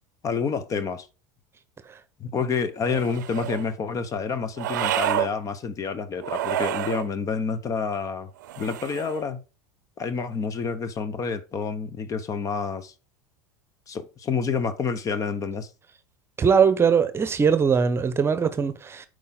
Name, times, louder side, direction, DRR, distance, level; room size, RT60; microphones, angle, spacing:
voice 1, 0.2-1.1 2.2-8.3 8.6-9.4 10.0-12.9 13.9-15.7, left 5 dB, 35° left, 1.1 m, -28 dB
sound 1, 2.8-3.7 4.6-5.3 6.2-7.1 8.4-9.2, right 12 dB, 80° right, 0.6 m, -28 dB
voice 2, 16.4-19.1, right 6 dB, 25° right, 0.9 m, -21 dB
8.5 x 4.9 x 4.0 m
hypercardioid pair, 85°, 10 cm